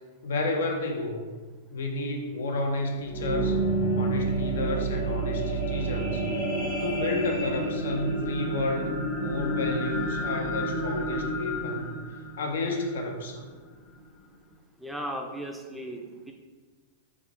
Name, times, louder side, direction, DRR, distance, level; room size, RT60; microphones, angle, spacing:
voice 1, 0.2-1.3 1.7-3.5 3.9-6.2 6.8-11.9 12.4-13.5, left 2 dB, 85° left, 2 dB, 0.6 m, -31 dB
sound 1, 3.0-13.3 13.9-14.0, right 1 dB, 55° left, 0.9 m, -30 dB
voice 2, 14.8-16.3, equal, 5° right, 2 dB, 0.4 m, -36 dB
3.5 x 2.5 x 3.3 m, 1.4 s
hypercardioid pair, 140°, 0 cm